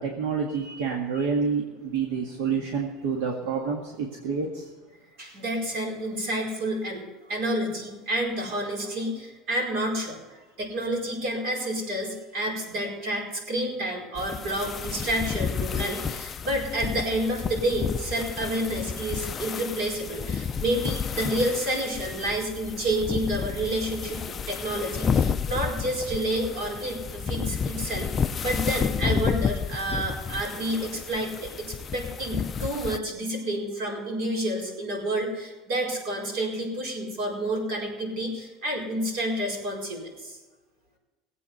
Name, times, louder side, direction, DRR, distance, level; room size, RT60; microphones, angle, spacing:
voice 1, 0.0-4.7, right 5 dB, 80° right, 0 dB, 1.9 m, -28 dB
voice 2, 5.2-40.4, right 1 dB, 55° right, -1 dB, 4.7 m, -29 dB
sound 1, 14.2-33.0, left 6 dB, 20° left, 0.4 m, -31 dB
19.5 x 8.5 x 5.6 m, 1.2 s
cardioid pair, 170°, 0 cm